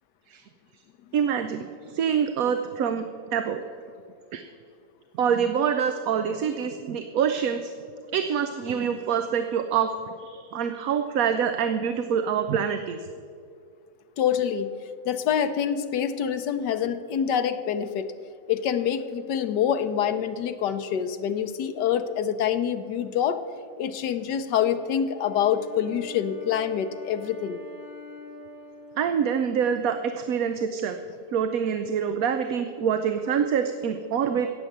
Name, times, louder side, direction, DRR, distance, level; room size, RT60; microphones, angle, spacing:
voice 1, 1.1-3.1 3.3-3.6 4.3-4.4 5.2-7.7 8.1-9.9 10.2-13.0 29.0-31.0 31.3-34.5, right 7 dB, 65° right, 8 dB, 1.0 m, -25 dB
voice 2, 14.2-14.7 15.0-18.1 18.5-23.4 23.8-27.6, left 8 dB, 85° left, 10 dB, 1.4 m, -26 dB
Wind instrument woodwind instrument, 24.6-30.0, left 2 dB, 15° right, 4.6 m, -45 dB
16.5 x 7.2 x 7.9 m, 2.3 s
omnidirectional pair, 1.8 m